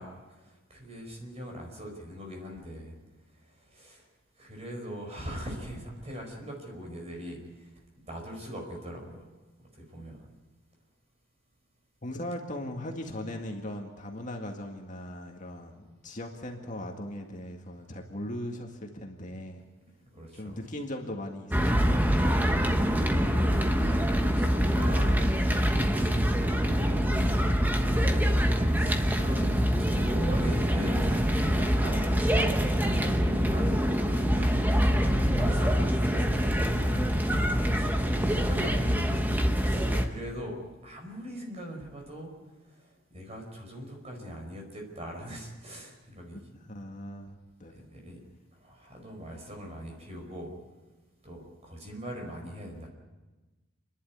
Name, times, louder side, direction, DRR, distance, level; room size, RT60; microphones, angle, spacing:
voice 1, 0.0-3.0 3.7-4.0 4.4-7.7 8.1-9.3 9.7-10.3 20.1-20.6 23.0-24.0 24.3-25.2 25.9-28.1 28.6-37.0 37.2-42.3 42.7-46.4 47.7-48.2 48.6-50.5 51.2-52.9, equal, 30° right, 2 dB, 4.9 m, -42 dB
voice 2, 12.0-19.6 20.3-22.5 38.3-38.5 46.5-47.7, left 1 dB, 40° left, 2 dB, 2.0 m, -39 dB
sound 1, 21.5-40.0, equal, 10° right, 1.2 m, -25 dB
28.5 x 11.5 x 9.4 m, 1.2 s
head